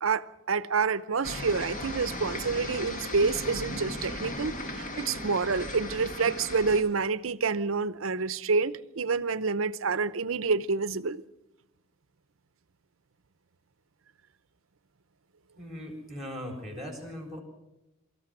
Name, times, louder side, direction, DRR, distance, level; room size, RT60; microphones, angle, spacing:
voice 1, 0.0-11.2, right 4 dB, 70° right, 0.7 m, -28 dB
sound 1, 1.2-6.8, left 1 dB, 40° left, 1.8 m, -37 dB
voice 2, 15.6-17.4, equal, ahead, 4.0 m, -39 dB
24.0 x 14.0 x 7.8 m
head